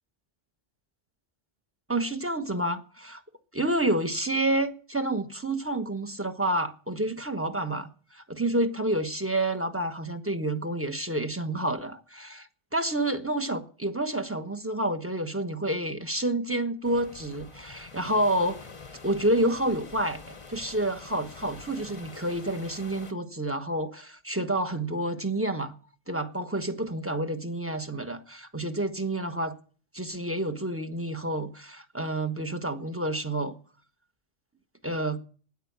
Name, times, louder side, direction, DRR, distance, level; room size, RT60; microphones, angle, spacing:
voice 1, 1.9-3.2 3.5-18.6 19.0-20.2 20.5-25.8 26.1-29.6 29.9-33.5 34.8-35.2, right 1 dB, 10° right, 1.1 m, -29 dB
sound 1, 16.8-23.1, left 4 dB, 30° left, 1.0 m, -46 dB
13.0 x 10.0 x 8.1 m
omnidirectional pair, 1.3 m